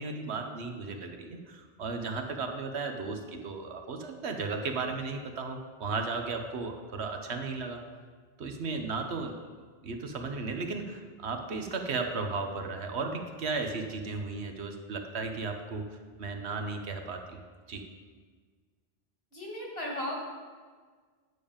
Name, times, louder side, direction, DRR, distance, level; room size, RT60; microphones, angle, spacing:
voice 1, 0.0-7.8 8.4-9.4 9.8-17.4 17.7-17.8, right 4 dB, 85° right, 5 dB, 1.3 m, -35 dB
voice 2, 19.3-20.2, left 1 dB, 70° left, -3 dB, 2.6 m, -35 dB
9.8 x 7.1 x 5.1 m, 1.5 s
omnidirectional pair, 1.1 m